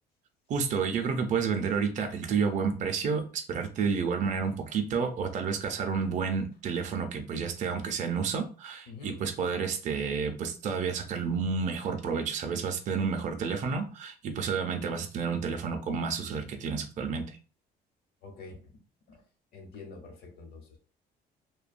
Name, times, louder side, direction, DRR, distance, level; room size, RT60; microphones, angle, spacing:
voice 1, 0.5-17.2, right 5 dB, 45° right, 4 dB, 0.5 m, -30 dB
voice 2, 8.9-9.2 18.2-18.7 19.1-19.2 19.5-20.8, left 4 dB, 65° left, 3 dB, 0.9 m, -46 dB
2.6 x 2.2 x 2.4 m, 0.37 s
cardioid pair, 110°, 17 cm